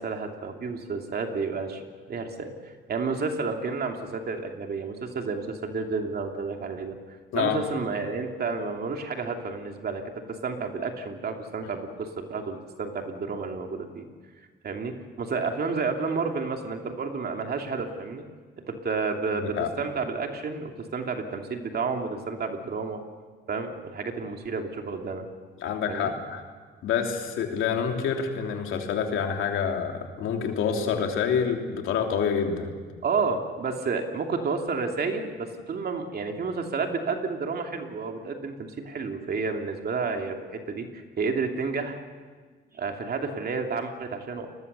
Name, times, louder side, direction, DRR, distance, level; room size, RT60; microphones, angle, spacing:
voice 1, 0.0-1.8 2.1-7.0 7.3-10.0 10.3-14.0 14.6-18.2 18.7-23.0 23.5-25.3 25.9-26.1 33.0-42.0 42.7-44.5, right 4 dB, 50° right, 3 dB, 2.8 m, -31 dB
voice 2, 19.3-19.7 25.6-26.4 26.8-32.7, left 7 dB, 85° left, 3 dB, 3.2 m, -27 dB
29.5 x 21.0 x 6.9 m, 1.5 s
cardioid pair, 90°, 20 cm